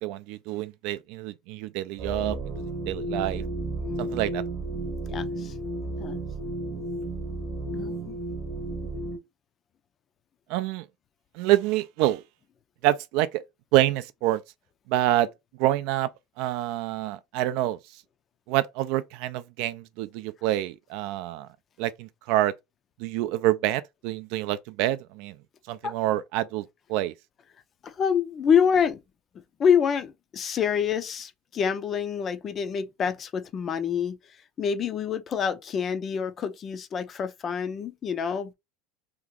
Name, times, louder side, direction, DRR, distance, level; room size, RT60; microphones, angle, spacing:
voice 1, 0.0-2.4 2.9-3.4 4.0-4.4 10.5-10.9 11.3-12.2 12.8-13.4 13.7-14.4 14.9-15.3 15.6-16.1 16.4-17.8 18.5-21.5 21.8-22.5 23.0-25.4 25.7-27.1, right 14 dB, 60° right, 0.3 m, -27 dB
sound 1, 2.0-9.2, right 2 dB, 35° right, 1.0 m, -33 dB
voice 2, 5.1-5.5 6.0-6.2 7.7-8.2 25.8-25.9 27.8-29.0 29.6-38.5, left 7 dB, 30° left, 0.4 m, -27 dB
2.8 x 2.4 x 3.5 m
supercardioid pair, 140°, 0 cm